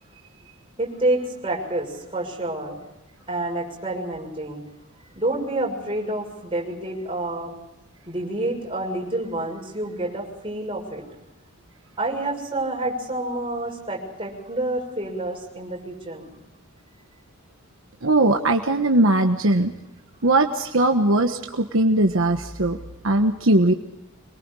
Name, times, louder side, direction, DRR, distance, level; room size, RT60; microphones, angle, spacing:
voice 1, 0.8-2.8 3.3-4.7 5.1-7.5 8.1-11.0 12.0-16.3, right 2 dB, 25° right, -1 dB, 6.6 m, -28 dB
voice 2, 18.0-19.7 20.2-22.8 23.0-23.7, right 2 dB, 65° right, 4 dB, 1.3 m, -19 dB
25.5 x 22.5 x 4.9 m, 0.95 s
head